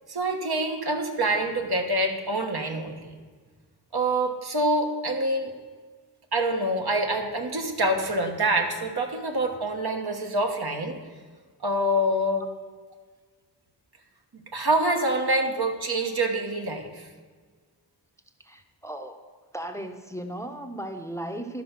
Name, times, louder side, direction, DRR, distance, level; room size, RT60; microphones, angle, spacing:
voice 1, 0.1-3.1 3.9-5.5 6.3-11.0 11.6-12.4 14.5-17.1, right 1 dB, 65° right, 3 dB, 1.3 m, -26 dB
voice 2, 18.5-19.2 19.5-21.6, right 1 dB, 5° left, 5 dB, 0.7 m, -36 dB
12.0 x 5.5 x 5.9 m, 1.5 s
wide cardioid pair, 55°, 41 cm